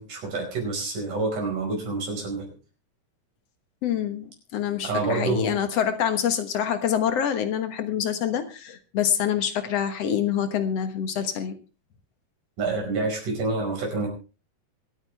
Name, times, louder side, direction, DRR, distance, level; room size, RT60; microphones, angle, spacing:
voice 1, 0.0-2.5 4.8-5.6 12.6-14.1, right 3 dB, 65° right, 1 dB, 6.5 m, -28 dB
voice 2, 3.8-11.5, left 9 dB, 55° left, 9 dB, 2.0 m, -26 dB
25.0 x 9.0 x 3.4 m, 0.32 s
omnidirectional pair, 4.0 m